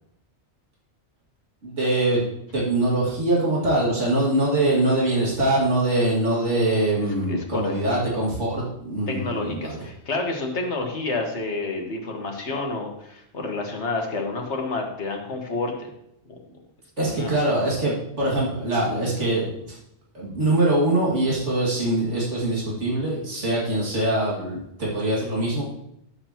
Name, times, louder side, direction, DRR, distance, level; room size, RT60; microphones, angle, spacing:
voice 1, 1.6-2.2 2.5-9.8 17.0-19.8 20.1-25.6, right 1 dB, 80° right, -5 dB, 2.7 m, -23 dB
voice 2, 7.3-7.8 9.1-15.9 16.3-16.4 17.0-17.3, left 3 dB, 70° left, 2 dB, 1.8 m, -29 dB
11.5 x 7.5 x 3.0 m, 0.80 s
omnidirectional pair, 1.2 m